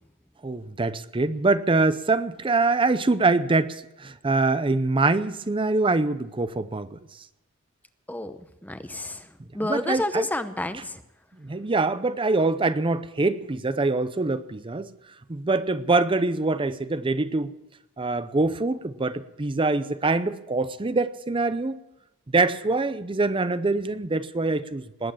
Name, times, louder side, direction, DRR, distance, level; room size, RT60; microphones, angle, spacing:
voice 1, 0.4-7.0 9.6-10.3 11.4-14.9 15.3-17.5 18.0-21.8 22.3-25.1, right 3 dB, 25° right, 13 dB, 0.6 m, -24 dB
voice 2, 8.1-9.2 9.5-11.0, left 1 dB, 10° left, 10 dB, 0.8 m, -30 dB
20.0 x 9.1 x 7.2 m, 0.90 s
head